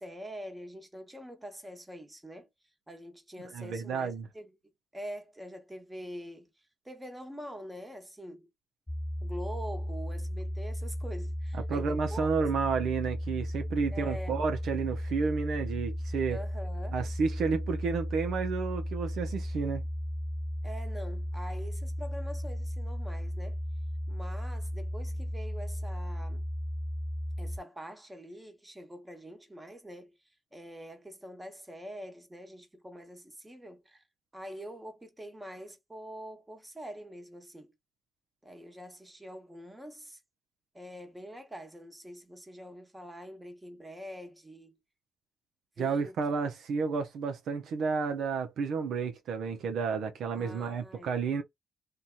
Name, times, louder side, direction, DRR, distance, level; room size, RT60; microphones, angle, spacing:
voice 1, 0.0-2.5 2.9-4.5 4.9-6.5 6.8-8.5 9.2-12.3 13.9-14.4 16.3-17.0 20.6-23.6 24.1-26.5 27.4-30.2 30.5-34.0 34.3-37.7 38.4-40.2 40.7-44.8 45.8-46.1 50.3-51.2, equal, 15° right, 1.1 m, -45 dB
voice 2, 3.5-4.3 11.7-16.4 16.9-19.8 45.8-51.4, right 5 dB, 75° right, 0.6 m, -31 dB
sound 1, 8.9-27.6, equal, 10° left, 0.3 m, -35 dB
2.7 x 2.3 x 2.4 m
supercardioid pair, 60°, 0 cm